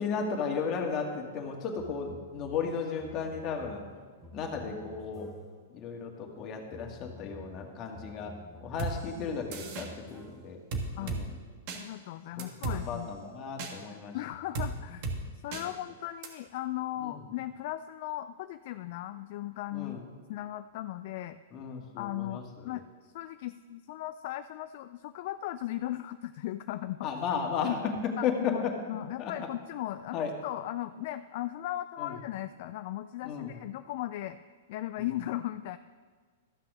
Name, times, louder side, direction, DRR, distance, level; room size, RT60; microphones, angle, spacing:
voice 1, 0.0-3.8 4.3-5.3 5.7-10.6 11.0-11.4 12.4-14.2 15.5-15.6 17.0-17.2 19.7-20.0 21.5-22.8 27.0-28.7 29.2-29.3 30.1-30.3 32.0-32.1 33.2-33.5 35.0-35.1, left 6 dB, 35° left, 2 dB, 1.9 m, -35 dB
sound 1, 1.4-5.7 6.4-10.6, left 1 dB, 10° right, 1.5 m, -51 dB
sound 2, 8.8-8.9 9.5-9.9 10.7-11.2 11.7-11.8 12.4-12.8 13.6-13.7 14.5-14.7 15.0-15.2 15.5-15.6 16.2-16.3, right 4 dB, 50° right, 1.5 m, -33 dB
voice 2, 11.7-13.2 14.1-15.1 15.4-20.0 20.3-21.4 22.0-27.1 27.6-27.8 28.2-34.4 34.7-35.8, left 14 dB, 55° left, 11 dB, 0.3 m, -37 dB
13.5 x 6.0 x 6.1 m, 1.6 s
hypercardioid pair, 115°, 0 cm